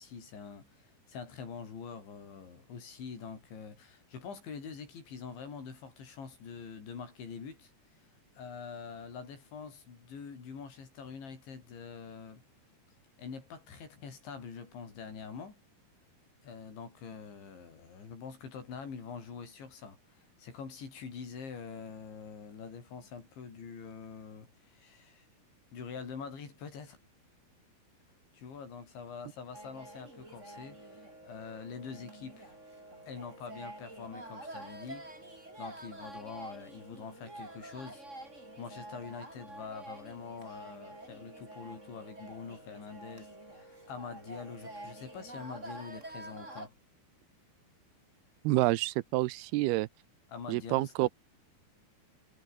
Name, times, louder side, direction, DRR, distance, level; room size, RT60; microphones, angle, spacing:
voice 1, 0.0-7.7 8.4-12.4 13.2-15.6 16.4-25.3 25.7-27.0 28.3-32.6 33.1-35.1 35.6-38.1 38.6-46.7 50.3-51.1, left 5 dB, 85° left, 8.4 m, -45 dB
sound 1, 29.5-46.7, right 1 dB, 15° right, 7.1 m, -48 dB
voice 2, 48.4-49.9 50.5-51.1, right 19 dB, 80° right, 2.4 m, -28 dB
omnidirectional pair, 5.1 m